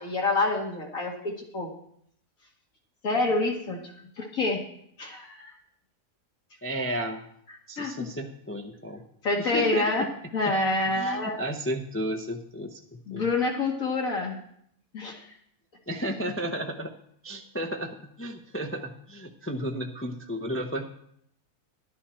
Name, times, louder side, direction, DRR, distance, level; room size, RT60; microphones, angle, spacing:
voice 1, 0.0-1.7 3.0-4.6 5.0-5.5 7.8-8.1 9.2-11.4 13.1-14.4 14.9-15.3, left 2 dB, 65° left, -1 dB, 1.8 m, -27 dB
voice 2, 6.6-7.2 7.7-9.0 9.4-9.9 10.4-10.6 10.9-13.3 15.9-16.9 17.2-20.8, equal, 15° left, 4 dB, 0.5 m, -33 dB
11.5 x 11.5 x 4.4 m, 0.69 s
omnidirectional pair, 1.6 m